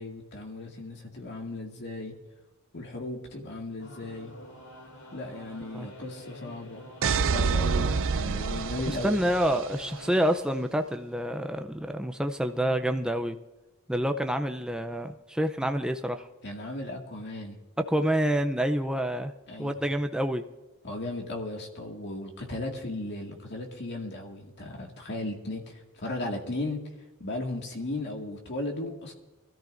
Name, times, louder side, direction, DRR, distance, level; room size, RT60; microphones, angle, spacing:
voice 1, 0.0-2.1 2.7-4.3 5.1-9.2 16.4-17.6 19.5-19.8 20.8-26.9 27.2-29.1, left 2 dB, 55° left, 1 dB, 2.1 m, -36 dB
sound 1, 3.8-10.2, equal, 80° left, 3.7 m, -48 dB
sound 2, 7.0-9.9, right 5 dB, 65° right, 0.5 m, -27 dB
voice 2, 8.9-13.4 13.9-16.3 17.9-19.3 19.6-20.4, equal, 5° right, 6 dB, 0.5 m, -27 dB
24.0 x 13.5 x 2.6 m, 1.1 s
head